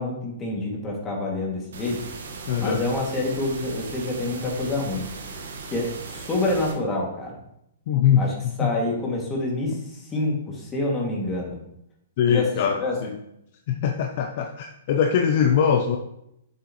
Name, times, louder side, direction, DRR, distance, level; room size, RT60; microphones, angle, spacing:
voice 1, 0.0-2.0 2.6-5.1 5.7-7.4 8.2-11.6 12.3-13.0, left 2 dB, 20° left, -2 dB, 2.5 m, -27 dB
sound 1, 1.7-6.7, right 4 dB, 75° right, 1.6 m, -38 dB
voice 2, 2.5-2.8 7.9-8.3 8.6-8.7 12.2-13.1 13.7-16.0, left 8 dB, 50° left, 4 dB, 0.7 m, -22 dB
7.4 x 7.0 x 3.2 m, 0.80 s
hypercardioid pair, 135°, 0 cm